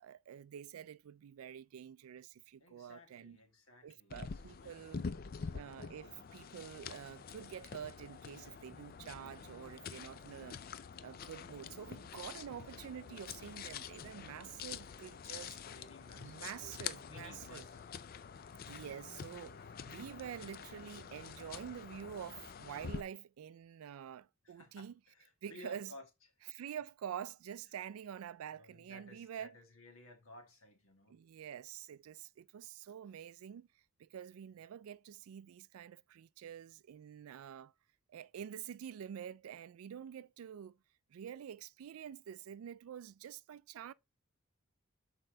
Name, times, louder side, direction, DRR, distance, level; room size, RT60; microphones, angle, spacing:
voice 1, 0.0-3.4 3.8-5.0 5.5-10.6 11.0-15.6 16.2-17.7 18.7-19.6 19.8-24.9 25.4-25.9 26.5-29.6 31.1-33.7 34.0-37.7 38.1-40.8 41.1-43.9, right 9 dB, 80° right, 0.3 m, -47 dB
voice 2, 2.6-5.5 15.1-17.9 24.4-26.1 28.5-31.2, left 1 dB, 75° left, 2.1 m, -57 dB
sound 1, 4.1-23.0, left 6 dB, 45° left, 0.4 m, -47 dB
6.6 x 4.4 x 3.8 m
head